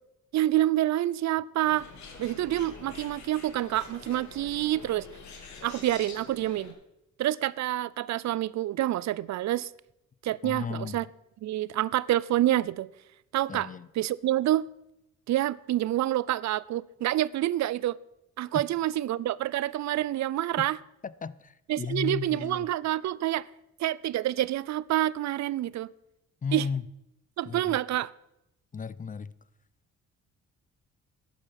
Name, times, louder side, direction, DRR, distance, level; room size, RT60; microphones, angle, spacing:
voice 1, 0.3-1.9 2.2-5.1 5.6-6.7 7.2-9.7 10.2-11.1 11.4-12.9 13.3-13.7 14.0-14.7 15.3-18.0 18.4-20.8 21.7-23.5 23.8-25.9 26.5-26.7 27.4-28.1, right 14 dB, 65° right, 0.5 m, -27 dB
Bird, 1.6-6.7, left 4 dB, 70° left, 3.2 m, -46 dB
voice 2, 10.4-11.0 13.5-13.9 18.5-18.6 21.0-22.7 26.4-26.9 27.4-27.8 28.7-29.3, left 6 dB, 25° left, 0.5 m, -34 dB
12.0 x 10.5 x 5.9 m
cardioid pair, 90°, 30 cm